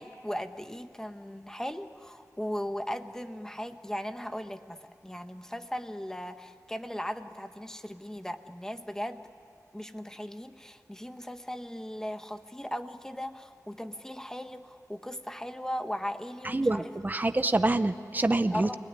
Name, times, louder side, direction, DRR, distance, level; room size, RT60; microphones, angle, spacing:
voice 1, 0.0-4.8 5.0-9.2 9.7-16.9 18.5-18.8, equal, 10° left, 8 dB, 1.3 m, -37 dB
voice 2, 16.4-18.8, right 2 dB, 30° right, 10 dB, 0.8 m, -26 dB
29.0 x 20.0 x 9.8 m, 2.5 s
wide cardioid pair, 80°, 6 cm